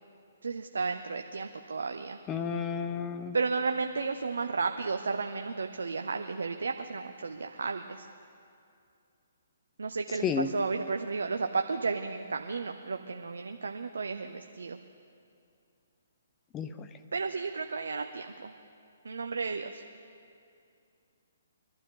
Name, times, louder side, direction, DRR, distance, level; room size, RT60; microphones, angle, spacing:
voice 1, 0.4-2.2 3.3-8.1 9.8-14.8 17.1-18.5 19.0-19.8, right 4 dB, 75° right, 6 dB, 0.7 m, -33 dB
voice 2, 2.3-3.4 10.2-10.5 16.5-16.9, left 6 dB, 20° left, 10 dB, 0.7 m, -31 dB
23.0 x 12.0 x 3.8 m, 2.4 s
figure-of-eight pair, 135°, 0 cm